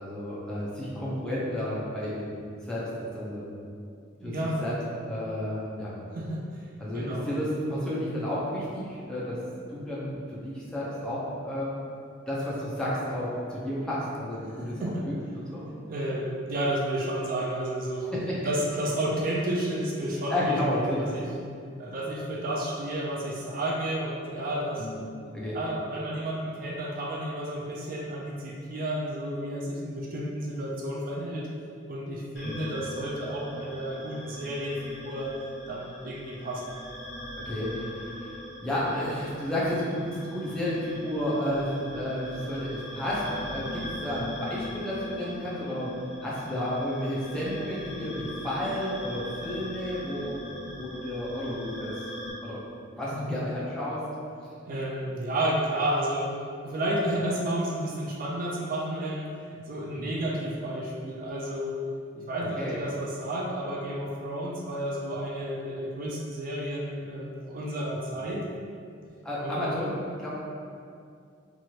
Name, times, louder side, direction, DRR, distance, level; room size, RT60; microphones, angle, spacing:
voice 1, 0.0-2.2 2.6-3.5 4.2-4.3 4.6-4.7 5.0-5.9 6.8-9.4 9.7-11.7 12.3-15.7 18.1-18.4 20.3-21.0 21.8-21.9 24.8-25.0 25.3-25.6 32.4-32.6 37.3-38.3 38.6-45.9 46.2-50.4 50.8-51.9 52.4-52.6 52.9-54.0 59.9-60.1 62.6-62.7 69.2-69.9 70.2-70.3, left 1 dB, 5° left, -8 dB, 0.5 m, -31 dB
voice 2, 4.2-4.7 6.1-6.6 6.9-7.3 14.5-15.1 15.9-18.1 18.4-21.3 21.8-24.9 25.5-31.5 31.9-35.3 35.7-36.8 53.1-53.4 54.6-56.3 56.6-61.8 62.1-68.4 69.4-69.6, right 1 dB, 45° right, -3 dB, 0.4 m, -31 dB
sound 1, 32.4-52.3, left 1 dB, 70° left, 1.1 m, -41 dB
3.0 x 2.5 x 2.8 m, 2.3 s
head